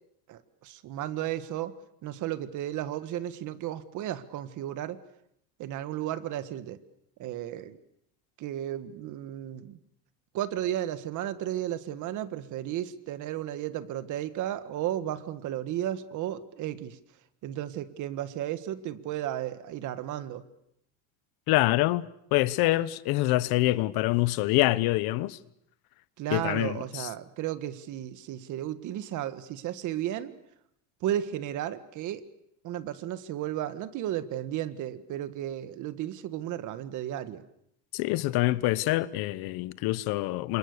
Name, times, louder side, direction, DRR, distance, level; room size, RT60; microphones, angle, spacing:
voice 1, 0.3-1.7 2.0-5.0 5.6-6.8 7.2-7.8 8.4-9.8 10.3-17.0 17.4-20.4 26.2-30.3 31.0-32.2 32.6-37.4, right 12 dB, 50° right, 1.7 m, -34 dB
voice 2, 21.5-25.4 26.3-27.1 37.9-40.6, left 18 dB, 75° left, 1.1 m, -26 dB
29.5 x 26.5 x 6.8 m
cardioid pair, 170°, 37 cm